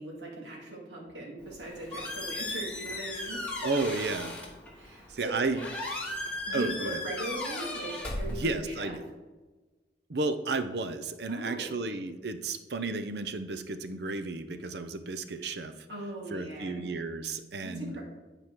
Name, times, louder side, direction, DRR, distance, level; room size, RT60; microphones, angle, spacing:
voice 1, 0.0-3.7 4.7-5.4 6.5-9.0 11.3-11.8 15.9-16.8 17.6-18.0, right 2 dB, 90° right, -3 dB, 2.3 m, -39 dB
Squeak, 1.4-8.9, left 2 dB, 10° left, 1.5 m, -37 dB
voice 2, 3.6-4.4 5.1-5.7 6.5-7.0 8.3-9.1 10.1-15.7 16.3-18.0, right 3 dB, 70° right, 9 dB, 0.6 m, -33 dB
9.7 x 4.9 x 4.6 m, 1.2 s
head